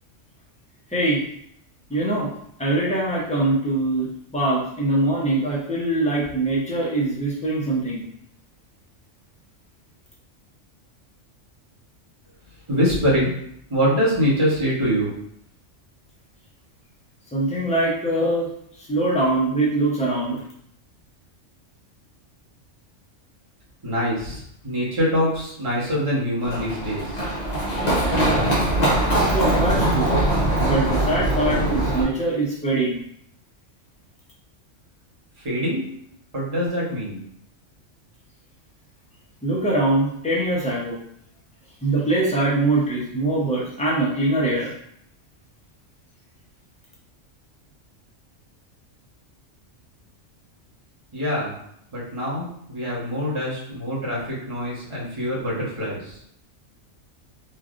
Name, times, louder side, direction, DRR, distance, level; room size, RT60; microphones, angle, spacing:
voice 1, 0.9-1.2 1.9-2.3 2.6-8.0 17.3-18.5 18.9-20.4 29.3-30.1 30.6-33.0 39.4-41.0 41.8-44.7, right 2 dB, 10° left, -6 dB, 0.5 m, -23 dB
voice 2, 12.7-13.3 13.7-15.1 23.8-27.3 35.4-35.9 36.3-37.2 51.1-51.6 51.9-56.2, equal, 25° right, -7 dB, 1.0 m, -24 dB
Run, 26.4-32.0, right 1 dB, 40° left, 0.7 m, -21 dB
3.2 x 2.5 x 2.4 m, 0.70 s
omnidirectional pair, 1.3 m